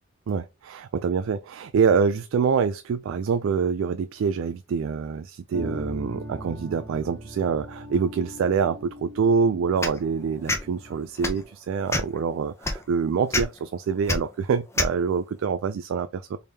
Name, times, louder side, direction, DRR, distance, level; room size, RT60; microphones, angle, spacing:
voice 1, 0.3-16.4, right 6 dB, 80° right, 0.3 m, -25 dB
sound 1, 5.5-11.1, equal, 45° right, 1.1 m, -39 dB
sound 2, 9.8-10.0 10.5-10.6 11.2-11.4 11.9-12.2 12.6-12.8 13.3-13.4 14.1-14.2 14.8-14.9, left 2 dB, 15° left, 0.5 m, -25 dB
3.6 x 3.3 x 2.7 m
head